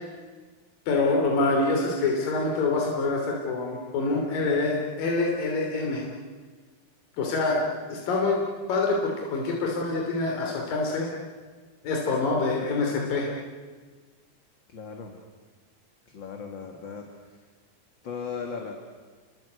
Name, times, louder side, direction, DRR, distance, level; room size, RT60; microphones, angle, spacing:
voice 1, 0.9-6.1 7.2-8.4 8.7-11.1 11.8-13.3, left 3 dB, 75° left, 0 dB, 4.8 m, -26 dB
voice 2, 14.7-15.2 16.1-17.4 18.0-18.7, left 5 dB, 40° left, 3 dB, 2.2 m, -37 dB
29.0 x 23.5 x 8.2 m, 1.4 s
omnidirectional pair, 4.0 m